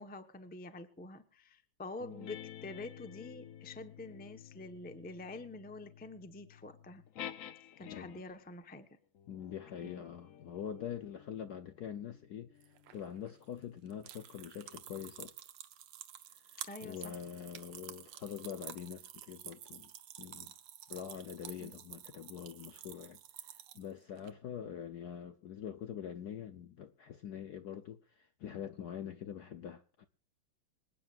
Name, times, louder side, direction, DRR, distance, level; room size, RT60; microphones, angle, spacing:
voice 1, 0.0-7.0 7.8-8.9 9.8-10.0 16.6-17.1 21.6-21.8, left 2 dB, 10° left, 0.5 m, -47 dB
sound 1, 2.0-8.4 9.1-14.1, left 10 dB, 85° left, 0.7 m, -51 dB
voice 2, 9.3-15.3 16.4-19.9 20.2-20.5 20.9-30.1, left 9 dB, 65° left, 1.0 m, -44 dB
sound 2, 12.6-24.3, right 11 dB, 85° right, 1.8 m, -50 dB
26.5 x 9.3 x 2.5 m
omnidirectional pair, 2.4 m